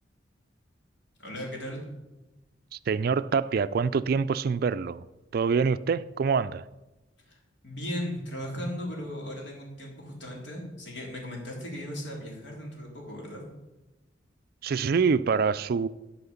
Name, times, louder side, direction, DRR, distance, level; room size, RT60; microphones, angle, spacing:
voice 1, 1.2-1.8 7.3-13.4, equal, 65° left, 3.3 m, -37 dB
voice 2, 2.9-5.0 5.3-6.6 14.6-15.9, right 5 dB, 50° right, 0.3 m, -25 dB
12.0 x 5.7 x 7.0 m
head